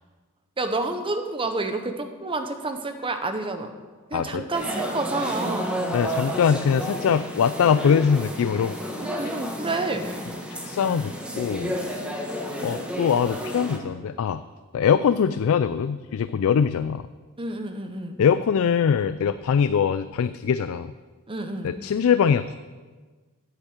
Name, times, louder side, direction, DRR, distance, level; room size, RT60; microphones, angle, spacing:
voice 1, 0.6-3.7 4.1-5.8 9.0-10.1 17.4-18.2 21.3-21.7, right 2 dB, 25° right, 6 dB, 0.9 m, -29 dB
voice 2, 4.1-4.4 5.9-8.7 9.2-9.3 10.6-11.7 12.3-14.4 14.7-17.0 18.2-20.9 21.6-22.6, left 7 dB, 70° left, 13 dB, 0.3 m, -22 dB
sound 1, 4.5-13.8, equal, 5° right, 1.4 m, -31 dB
8.9 x 8.3 x 7.2 m, 1.4 s
head